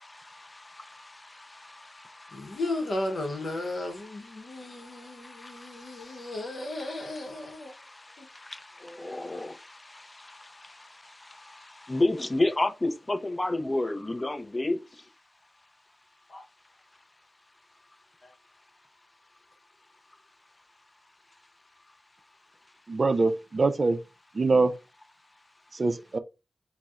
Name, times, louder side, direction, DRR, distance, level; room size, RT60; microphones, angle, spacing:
voice 1, 0.3-1.0 1.7-2.6 4.1-4.2 5.2-5.7 6.1-6.2 7.3-7.5 8.4-10.5 11.8-14.8, left 2 dB, 30° left, 0.4 m, -31 dB
voice 2, 2.3-7.7 8.2-8.3 16.3-16.4 18.2-18.3, left 2 dB, 65° left, 0.7 m, -35 dB
voice 3, 22.9-24.0 24.3-24.7 25.7-26.2, right 3 dB, 50° right, 0.4 m, -24 dB
4.0 x 2.0 x 2.3 m
cardioid pair, 60°, 0 cm